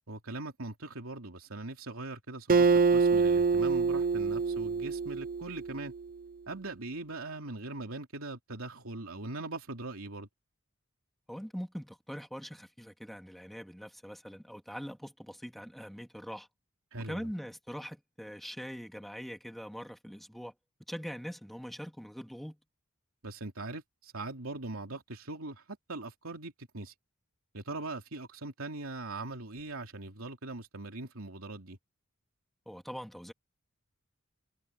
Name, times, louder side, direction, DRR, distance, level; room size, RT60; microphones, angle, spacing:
voice 1, 0.1-5.9 6.5-10.3 16.9-17.3 23.2-26.9 27.5-31.8, right 2 dB, 80° right, 3.0 m, -41 dB
Acoustic guitar, 2.5-6.0, right 4 dB, 45° right, 0.8 m, -26 dB
voice 2, 11.3-16.5 17.0-20.5 20.9-22.6 32.7-33.3, equal, ahead, 2.4 m, -42 dB
head